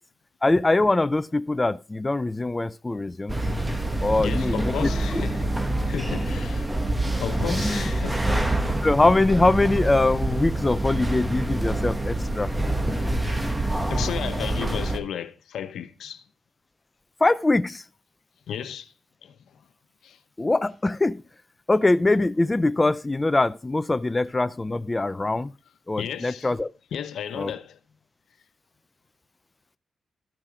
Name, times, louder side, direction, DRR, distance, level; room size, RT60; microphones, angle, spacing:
voice 1, 0.4-3.4 4.0-4.9 7.5-7.8 8.8-12.5 17.2-17.8 20.4-21.2 21.7-25.5 25.9-26.7 27.3-27.5, left 2 dB, 20° left, 0.5 m, -23 dB
sound 1, 3.3-15.0, right 1 dB, 15° right, 1.4 m, -26 dB
voice 2, 4.2-5.5 5.8-6.7 7.1-8.2 13.9-16.2 18.5-18.9 19.2-19.3 20.0-20.2 26.0-26.5 26.9-27.8, left 8 dB, 85° left, 1.0 m, -33 dB
13.5 x 6.1 x 4.9 m
cardioid pair, 80°, 0 cm